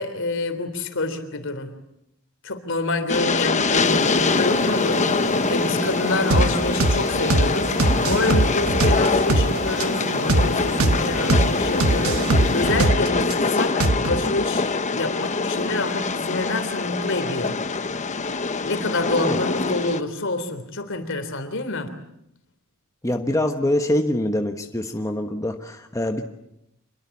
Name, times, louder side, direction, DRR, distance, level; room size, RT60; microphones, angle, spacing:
voice 1, 0.0-1.7 2.4-17.6 18.6-21.9, left 2 dB, 60° left, 9 dB, 3.4 m, -27 dB
Train, 3.1-20.0, left 4 dB, 35° left, 1.1 m, -24 dB
sound 1, 3.7-12.8, right 2 dB, 60° right, 5.7 m, -32 dB
sound 2, 6.3-6.5 6.8-7.0 7.3-7.5 7.8-9.5 9.8-9.9 10.3-10.5 10.8-11.0 11.3-11.5 11.8-13.3 13.8-14.2, right 2 dB, 90° right, 1.3 m, -20 dB
voice 2, 23.0-26.3, left 1 dB, 15° left, 4 dB, 1.2 m, -24 dB
26.5 x 22.0 x 8.4 m, 0.80 s
head